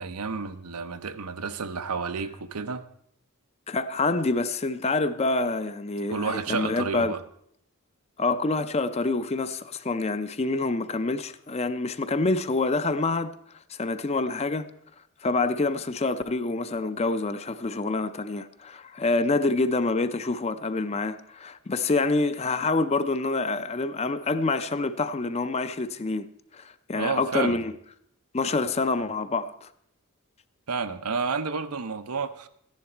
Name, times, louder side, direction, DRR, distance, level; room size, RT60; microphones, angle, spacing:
voice 1, 0.0-2.8 6.1-7.2 26.9-27.6 30.7-32.5, right 5 dB, 85° right, 0.7 m, -30 dB
voice 2, 3.7-7.1 8.2-13.3 13.7-14.7 15.2-26.3 26.5-27.7 28.3-29.7, left 3 dB, 30° left, 0.5 m, -27 dB
13.5 x 10.5 x 4.4 m
head